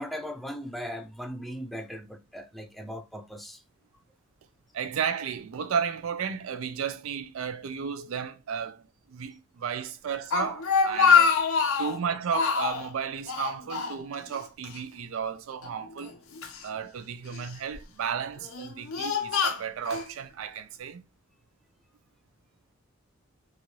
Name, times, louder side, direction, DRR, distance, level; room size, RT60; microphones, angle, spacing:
voice 1, 0.0-3.6 10.9-11.0, equal, ahead, 0.4 m, -38 dB
voice 2, 4.7-11.4 11.8-16.2 16.6-21.0, right 7 dB, 75° right, 0.4 m, -33 dB
Speech, 10.1-12.0 12.3-12.9 13.3-14.4 14.6-14.8 15.6-16.6 17.3-17.8 18.4-20.1, left 6 dB, 90° left, 0.6 m, -25 dB
3.1 x 2.5 x 2.6 m
head